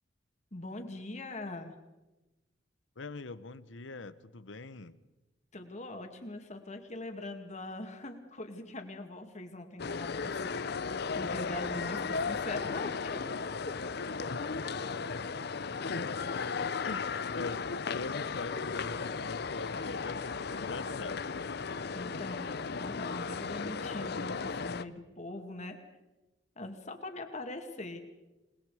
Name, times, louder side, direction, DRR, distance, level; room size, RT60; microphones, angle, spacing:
voice 1, 0.5-1.7 5.5-10.8 11.1-13.2 21.9-25.8 26.6-28.0, left 2 dB, 40° left, 6 dB, 2.3 m, -42 dB
voice 2, 3.0-5.0 14.3-14.4 15.8-21.6, left 3 dB, 85° left, 14 dB, 1.0 m, -43 dB
sound 1, 9.8-24.8, left 5 dB, 60° left, 0.7 m, -35 dB
28.5 x 20.0 x 5.0 m, 1.0 s
head